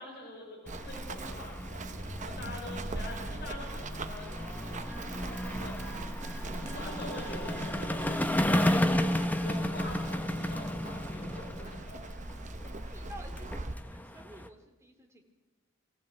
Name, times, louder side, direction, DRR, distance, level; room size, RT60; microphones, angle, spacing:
voice 1, 0.0-5.7 6.5-9.0 9.4-12.0, left 1 dB, 50° left, -2 dB, 5.1 m, -44 dB
sound 1, 0.7-14.5, left 1 dB, 10° left, 0.9 m, -33 dB
Run, 0.7-13.7, right 2 dB, 35° right, 0.9 m, -41 dB
sound 2, 4.9-10.2, right 2 dB, 70° right, 3.4 m, -53 dB
voice 2, 12.9-15.2, equal, 15° right, 3 dB, 2.5 m, -51 dB
23.5 x 15.0 x 7.9 m, 1.2 s
head